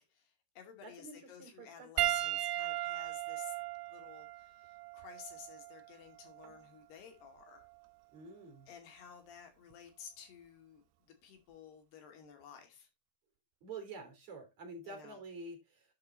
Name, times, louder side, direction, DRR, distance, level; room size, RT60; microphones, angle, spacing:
voice 1, 0.0-3.6 3.9-7.7 8.7-12.9 14.8-15.2, left 7 dB, 70° left, 4.4 m, -54 dB
voice 2, 0.8-2.1 8.1-8.7 13.6-15.9, right 3 dB, 45° right, 4.6 m, -48 dB
Piano, 2.0-6.6 7.6-7.8 9.7-9.8, right 13 dB, 75° right, 2.4 m, -37 dB
11.0 x 6.5 x 4.0 m
omnidirectional pair, 5.0 m